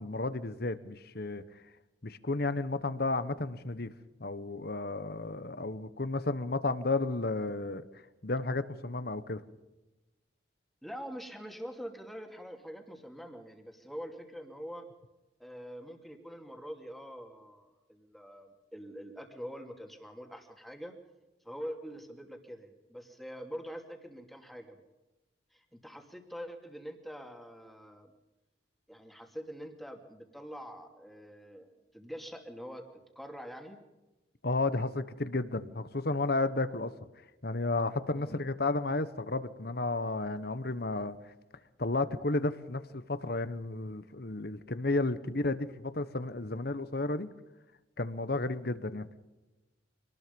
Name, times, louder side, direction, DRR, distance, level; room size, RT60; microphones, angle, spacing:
voice 1, 0.0-1.4 2.0-3.9 4.2-7.8 8.2-9.4 34.4-36.9 37.4-41.2 41.8-47.3 48.0-49.1, left 2 dB, 55° left, 13 dB, 1.3 m, -32 dB
voice 2, 10.8-14.9 15.4-20.9 21.4-24.8 25.5-28.1 28.9-32.9 33.1-33.8 38.1-38.4, equal, ahead, 3 dB, 2.6 m, -45 dB
26.0 x 19.5 x 5.4 m, 1.0 s
head